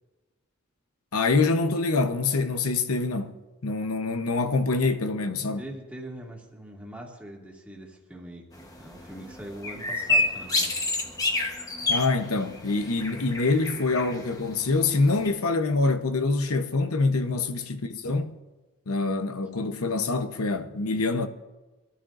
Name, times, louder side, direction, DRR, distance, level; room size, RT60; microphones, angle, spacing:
voice 1, 1.1-3.3 3.6-5.6 11.9-18.3 18.9-21.3, left 3 dB, 90° left, 0.9 m, -25 dB
voice 2, 5.6-8.5 8.8-10.7 17.3-17.4, right 1 dB, 5° right, 2.0 m, -42 dB
sound 1, 8.5-15.3, left 2 dB, 15° left, 1.0 m, -30 dB
24.5 x 14.0 x 2.6 m
head